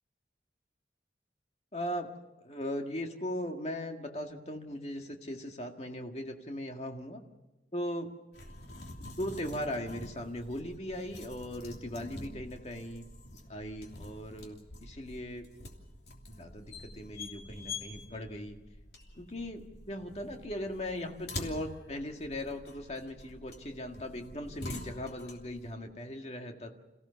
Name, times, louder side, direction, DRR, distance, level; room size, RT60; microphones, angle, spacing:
voice 1, 1.7-2.1 2.4-7.2 7.7-8.1 9.0-13.0 13.5-15.5 16.3-18.6 19.2-26.7, left 1 dB, 35° left, 3 dB, 1.9 m, -38 dB
sound 1, 8.3-25.7, left 2 dB, 70° left, 3.1 m, -46 dB
27.5 x 16.0 x 7.0 m, 1.0 s
head